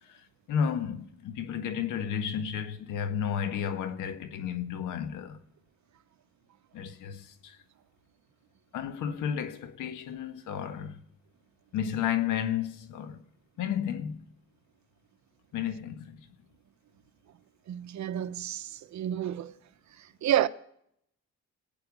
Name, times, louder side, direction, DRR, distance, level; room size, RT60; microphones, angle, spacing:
voice 1, 0.0-5.4 6.7-7.6 8.7-11.0 11.7-13.2 13.6-14.2 15.5-16.2, left 8 dB, 90° left, 1.6 m, -32 dB
voice 2, 17.7-19.5 20.2-20.5, right 11 dB, 65° right, 0.9 m, -29 dB
25.5 x 9.2 x 5.2 m
cardioid pair, 90°, 30 cm